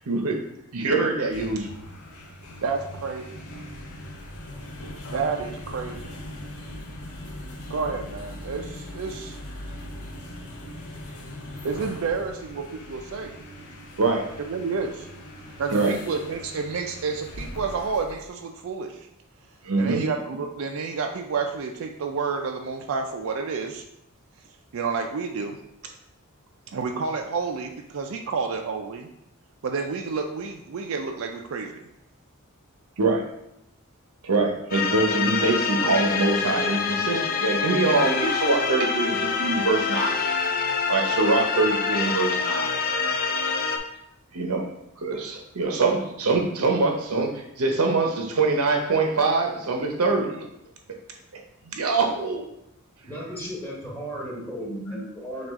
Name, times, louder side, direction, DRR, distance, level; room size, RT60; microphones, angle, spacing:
voice 1, 0.1-0.4 0.7-1.7 14.0-14.3 15.7-15.9 19.6-20.0 33.0-33.2 34.2-40.2 40.9-43.2 44.3-50.5 50.9-51.0 51.3-52.5, right 3 dB, 85° right, 2 dB, 0.8 m, -24 dB
sound 1, 1.2-18.3, left 1 dB, 80° left, 0.8 m, -40 dB
voice 2, 2.6-3.4 5.1-6.2 7.7-9.4 11.6-13.3 14.4-15.1 15.6-19.1 19.8-23.8 24.7-25.6 26.7-29.1 29.6-31.8 43.1-43.2, right 4 dB, 65° right, 3 dB, 0.4 m, -30 dB
sound 2, 34.7-43.8, left 5 dB, 40° left, 0.4 m, -26 dB
voice 3, 53.0-55.5, equal, 10° left, -4 dB, 1.1 m, -34 dB
6.1 x 2.4 x 3.6 m, 0.80 s
head